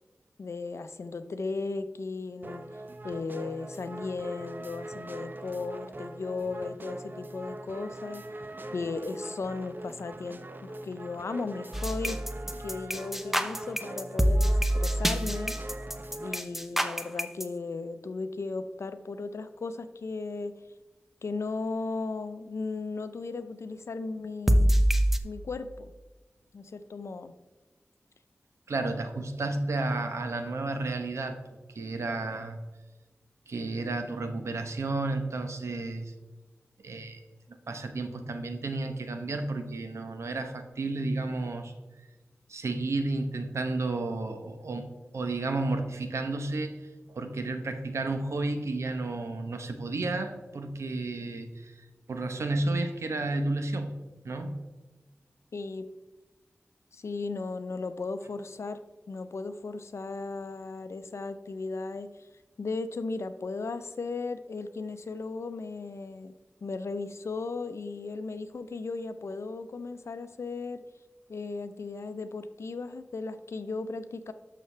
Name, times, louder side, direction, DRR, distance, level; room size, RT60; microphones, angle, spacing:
voice 1, 0.4-2.7 3.0-8.2 8.7-12.2 12.6-15.6 16.2-20.5 21.2-24.8 25.2-25.9 26.5-27.3 55.5-55.8 56.9-58.8 59.1-62.3 62.6-66.3 66.6-70.8 71.3-74.3, left 3 dB, 75° left, 11 dB, 0.6 m, -36 dB
sound 1, 2.4-16.4, right 1 dB, 45° right, 0.7 m, -42 dB
sound 2, 11.7-17.4 24.5-25.2, equal, 5° right, 0.7 m, -25 dB
voice 2, 28.7-31.4 31.7-32.6 33.5-36.1 36.8-37.2 37.7-41.7 42.5-46.7 47.1-51.8 52.1-54.0 54.2-54.6, right 2 dB, 90° right, 7 dB, 1.0 m, -32 dB
11.5 x 6.8 x 3.3 m, 1.2 s
wide cardioid pair, 60°, 5 cm